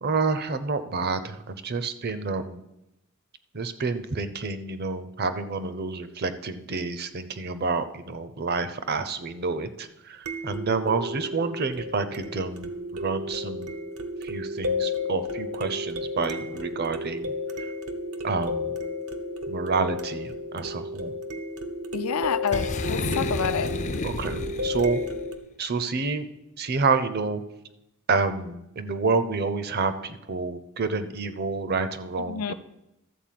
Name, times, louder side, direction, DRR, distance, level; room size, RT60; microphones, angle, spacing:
voice 1, 0.0-2.6 3.5-13.7 14.2-17.3 18.2-18.8 19.5-21.1 24.0-25.0 25.6-26.3 26.6-27.4 28.1-32.5, right 4 dB, 45° right, 0.6 m, -28 dB
sound 1, 10.3-25.4, left 2 dB, 80° right, 0.9 m, -33 dB
voice 2, 21.9-23.7 32.3-32.5, left 7 dB, 85° left, 0.5 m, -28 dB
Boom, 22.5-25.2, left 3 dB, 35° left, 0.4 m, -31 dB
13.0 x 4.4 x 7.5 m
head